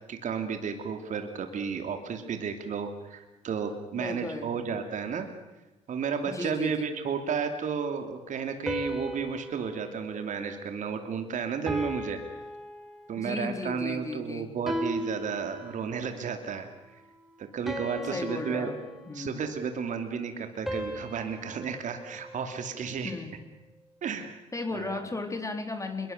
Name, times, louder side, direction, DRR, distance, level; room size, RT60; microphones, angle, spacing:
voice 1, 0.1-5.3 5.9-12.2 13.1-16.7 17.4-18.7 19.1-23.1 24.0-24.4 24.7-25.0, right 6 dB, 50° right, 6 dB, 2.9 m, -32 dB
voice 2, 3.9-4.6 6.3-6.9 13.2-14.6 18.1-18.8 19.1-19.4 23.0-23.4 24.5-26.1, left 2 dB, 20° left, 6 dB, 3.9 m, -35 dB
sound 1, 8.7-11.2 11.7-13.4 14.7-16.2 17.7-19.5 20.7-23.0, equal, ahead, 4.2 m, -38 dB
26.0 x 22.5 x 6.8 m, 1.1 s
hypercardioid pair, 60°, 16 cm